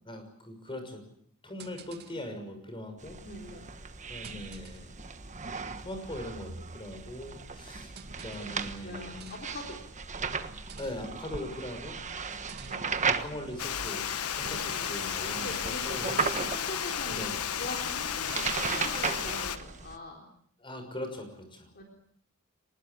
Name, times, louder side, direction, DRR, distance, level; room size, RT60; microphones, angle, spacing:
voice 1, 0.0-1.0 1.4-3.2 4.1-4.9 5.8-7.9 8.2-9.3 10.8-12.4 13.0-15.6 15.8-16.1 17.1-17.4 20.6-21.7, left 1 dB, 25° left, 6 dB, 6.2 m, -41 dB
sound 1, 1.6-2.3 3.2-3.5 4.2-5.0 6.0-6.1 8.0-8.6 9.2-9.7 10.5-11.3 12.3-13.0, right 4 dB, 50° right, 2.1 m, -50 dB
sound 2, 3.0-20.0, right 5 dB, 35° right, 1.3 m, -37 dB
voice 2, 3.2-3.6 8.4-8.5 8.8-9.8 12.7-13.0 14.5-15.0 15.3-20.3 21.7-21.8, left 1 dB, 45° left, 1 dB, 4.0 m, -43 dB
Water, 13.6-19.6, left 8 dB, 85° left, 1.2 m, -33 dB
24.5 x 20.0 x 8.5 m, 0.65 s
head